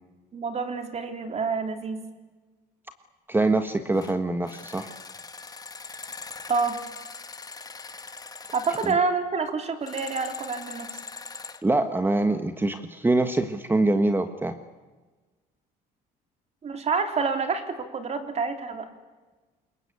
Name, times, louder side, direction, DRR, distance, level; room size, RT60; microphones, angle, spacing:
voice 1, 0.3-2.0 6.5-6.8 8.5-10.9 16.6-18.9, right 4 dB, 40° right, 7 dB, 3.4 m, -27 dB
voice 2, 3.3-4.9 8.8-8.9 11.6-14.6, right 2 dB, 10° right, 9 dB, 1.3 m, -24 dB
sound 1, 3.9-4.2 4.4-9.0 9.8-11.6, left 4 dB, 20° left, 1.6 m, -41 dB
26.0 x 22.5 x 8.4 m, 1.3 s
cardioid pair, 110°, 17 cm